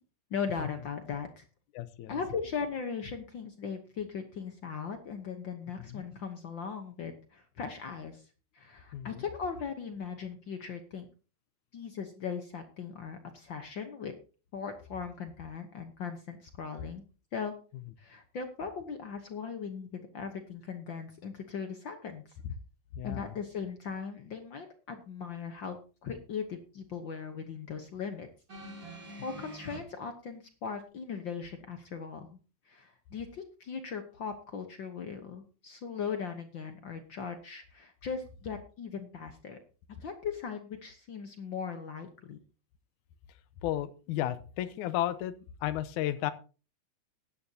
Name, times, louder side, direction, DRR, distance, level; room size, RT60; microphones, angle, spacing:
voice 1, 0.3-1.4 2.1-8.3 8.5-11.1 11.7-14.1 14.5-17.0 17.3-17.5 18.0-22.4 23.0-28.3 29.2-32.4 32.6-39.6 40.0-42.4, left 6 dB, 65° left, 6 dB, 1.2 m, -39 dB
voice 2, 1.8-2.2 5.8-6.0 8.9-9.2 22.5-22.6 23.0-23.3 43.6-45.3 45.6-46.3, left 12 dB, 80° left, 12 dB, 2.2 m, -33 dB
sound 1, 28.5-29.8 30.8-30.9, right 1 dB, 30° right, 2.7 m, -45 dB
16.0 x 11.0 x 2.8 m, 0.35 s
omnidirectional pair, 3.5 m